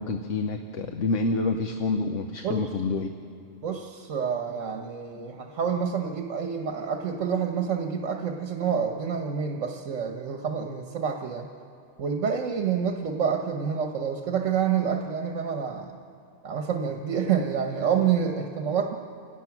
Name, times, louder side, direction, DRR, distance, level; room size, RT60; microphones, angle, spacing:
voice 1, 0.0-3.1, left 3 dB, 75° left, 6 dB, 1.3 m, -27 dB
voice 2, 3.6-11.5 12.0-15.9 16.4-19.0, right 7 dB, 80° right, 3 dB, 1.4 m, -28 dB
29.0 x 17.5 x 6.0 m, 2.4 s
omnidirectional pair, 1.3 m